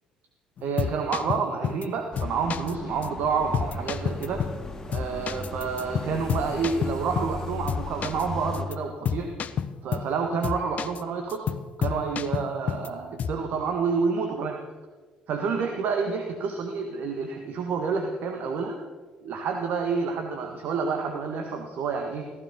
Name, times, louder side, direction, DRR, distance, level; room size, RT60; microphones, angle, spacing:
sound 1, 0.6-1.9 2.2-2.7 3.0-3.1 3.5-4.6 4.9-7.4 7.7-8.2 8.5-8.7 9.0-10.1 10.4-11.0 11.3-12.9 13.2-13.5, left 7 dB, 45° left, 0.8 m, -30 dB
voice 1, 0.6-4.5 4.9-9.3 9.8-11.5 11.8-14.6 15.3-18.8 19.2-22.3, right 5 dB, 60° right, 4 dB, 1.6 m, -29 dB
sound 2, 2.1-8.6, left 2 dB, 20° left, 3.1 m, -37 dB
16.0 x 15.5 x 5.5 m, 1.4 s
hypercardioid pair, 50°, 3 cm